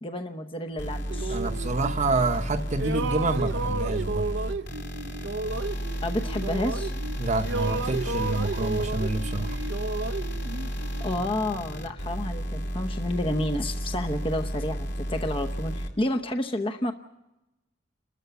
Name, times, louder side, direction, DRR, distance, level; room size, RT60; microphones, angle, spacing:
voice 1, 0.0-1.4 6.0-6.9 11.0-16.9, left 1 dB, 30° left, 5 dB, 0.9 m, -30 dB
sound 1, 0.8-15.9, equal, 60° left, 2.8 m, -32 dB
sound 2, 1.1-2.5 2.8-7.2 7.4-11.3, right 3 dB, 65° right, 0.6 m, -33 dB
voice 2, 1.3-4.3 7.2-9.6, right 2 dB, 40° right, 5 dB, 0.9 m, -28 dB
30.0 x 13.5 x 7.0 m, 0.96 s
head